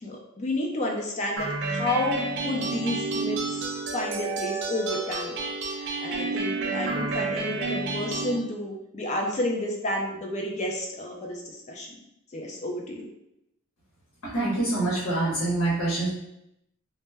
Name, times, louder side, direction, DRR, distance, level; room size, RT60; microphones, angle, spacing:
voice 1, 0.0-3.7 3.9-5.4 5.7-12.0 12.3-13.1, left 1 dB, 30° left, 0 dB, 0.4 m, -31 dB
sound 1, 1.4-8.4, right 3 dB, 55° right, 0.4 m, -30 dB
voice 2, 14.2-16.1, right 2 dB, 85° left, -7 dB, 0.8 m, -25 dB
2.1 x 2.0 x 3.3 m, 0.82 s
head